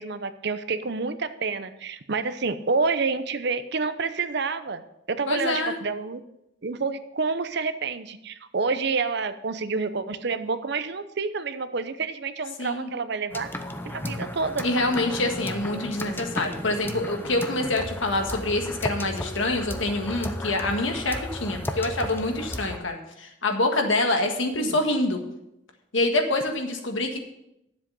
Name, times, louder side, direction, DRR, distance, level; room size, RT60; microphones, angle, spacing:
voice 1, 0.0-4.8 5.1-6.2 6.6-13.5 13.8-14.7 24.6-24.8, right 4 dB, 60° right, 11 dB, 0.7 m, -28 dB
voice 2, 5.3-5.8 12.6-12.9 14.6-25.2 25.9-27.2, left 2 dB, 85° left, 4 dB, 1.6 m, -26 dB
sound 1, 13.3-22.8, left 1 dB, 10° left, 0.7 m, -34 dB
10.0 x 7.5 x 5.5 m, 0.83 s
head